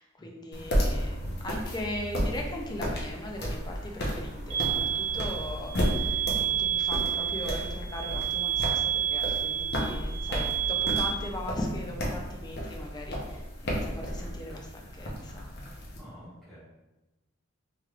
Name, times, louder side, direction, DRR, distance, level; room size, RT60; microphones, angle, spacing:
voice 1, 0.0-15.5, left 1 dB, 20° left, 1 dB, 0.4 m, -39 dB
sound 1, 0.5-16.0, equal, 55° left, 0.7 m, -33 dB
sound 2, 4.5-11.1, right 10 dB, 70° right, 1.1 m, -30 dB
voice 2, 16.0-16.6, equal, ahead, -12 dB, 1.2 m, -48 dB
3.2 x 3.1 x 2.4 m, 1.0 s
head